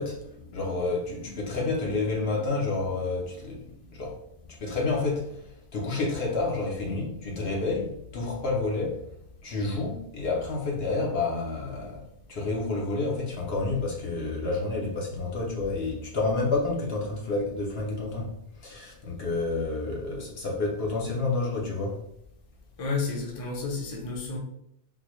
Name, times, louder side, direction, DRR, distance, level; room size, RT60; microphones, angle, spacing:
voice 1, 0.0-4.2 4.5-9.1 9.4-12.0 12.3-18.3 18.5-22.0, left 3 dB, 65° left, -2 dB, 1.0 m, -29 dB
voice 2, 22.8-24.4, left 4 dB, 35° left, -2 dB, 0.7 m, -31 dB
3.9 x 2.2 x 3.0 m, 0.76 s
omnidirectional pair, 1.2 m